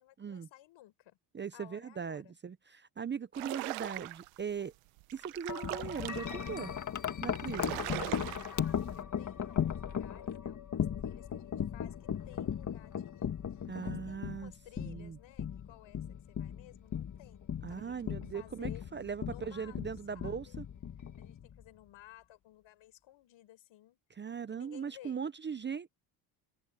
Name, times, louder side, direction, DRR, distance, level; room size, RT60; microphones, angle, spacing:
voice 1, 0.0-1.2 1.5-2.4 7.6-7.7 8.3-18.8 19.3-19.8 20.1-20.6 21.2-24.0 24.5-25.2, left 14 dB, 65° left, 6.0 m, -57 dB
voice 2, 1.3-4.7 5.1-6.7 7.2-7.8 13.7-14.5 14.8-15.2 17.6-20.6 24.2-25.9, right 6 dB, 20° right, 0.7 m, -39 dB
sound 1, 3.3-4.4 5.0-6.5 7.0-7.1 7.3-8.7, right 20 dB, 80° right, 1.3 m, -41 dB
Wind chime, 5.5-21.7, left 8 dB, 35° left, 1.8 m, -37 dB
open air
supercardioid pair, 95°, 49 cm